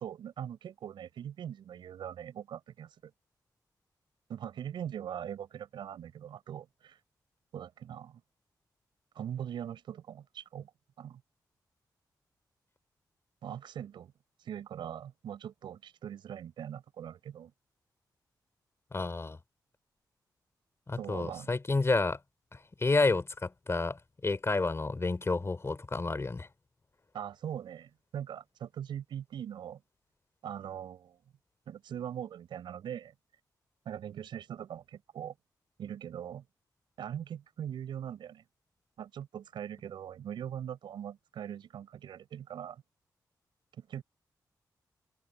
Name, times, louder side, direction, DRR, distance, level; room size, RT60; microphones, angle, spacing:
voice 1, 0.0-3.1 4.3-7.0 7.5-8.2 9.1-10.7 11.0-11.2 13.4-14.1 14.4-17.5 21.0-21.5 27.1-29.8 30.4-31.2 31.7-33.1 33.8-35.3 35.8-36.4 37.0-38.4 39.0-42.8 43.8-44.0, right 9 dB, 85° right, 6.0 m, -41 dB
voice 2, 18.9-19.4 20.9-22.2 22.5-26.5, left 3 dB, 35° left, 3.2 m, -30 dB
cardioid pair, 55°, 8 cm